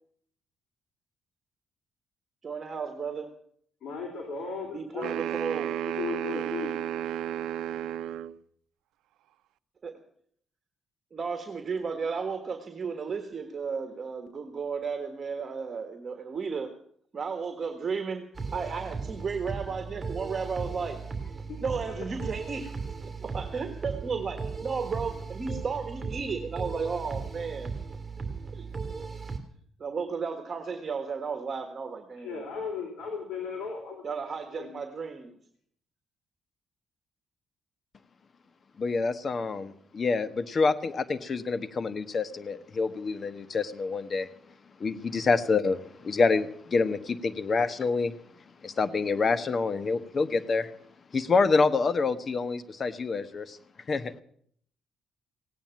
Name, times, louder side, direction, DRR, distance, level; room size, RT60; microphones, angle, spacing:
voice 1, 2.4-3.3 4.7-5.8 9.8-9.9 11.1-16.7 17.1-18.2 18.5-21.0 21.6-22.7 23.0-27.7 28.5-28.7 29.8-32.4 34.0-35.4, right 5 dB, 40° right, 7 dB, 1.6 m, -34 dB
voice 2, 3.8-5.1 5.8-6.7 21.5-21.6 21.9-22.0 32.2-34.0 34.5-34.7, left 5 dB, 70° left, 1 dB, 3.8 m, -36 dB
sound 1, 5.0-8.4, right 10 dB, 85° right, 0.6 m, -32 dB
sound 2, 18.3-29.4, right 4 dB, 25° right, 2.5 m, -37 dB
voice 3, 38.8-44.3 44.8-48.1 48.6-50.7 51.1-53.6 53.9-54.1, left 4 dB, 40° left, 12 dB, 1.2 m, -27 dB
17.0 x 9.2 x 9.0 m, 0.63 s
cardioid pair, 90°, 0 cm